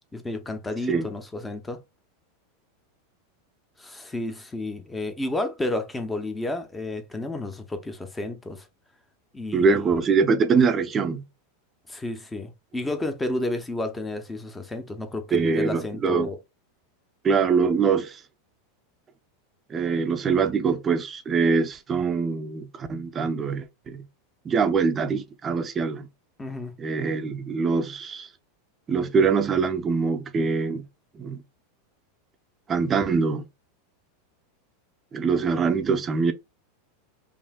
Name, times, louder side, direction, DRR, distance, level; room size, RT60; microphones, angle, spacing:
voice 1, 0.1-1.8 3.8-8.7 9.3-9.9 11.9-16.4 26.4-26.7, left 2 dB, 10° left, 0.8 m, -31 dB
voice 2, 9.5-11.3 15.3-16.3 17.2-18.2 19.7-24.1 24.4-26.1 26.8-28.3 28.9-30.9 31.1-31.4 32.7-33.4 35.1-36.3, right 5 dB, 20° right, 0.6 m, -23 dB
5.3 x 2.7 x 2.4 m
supercardioid pair, 140°, 0 cm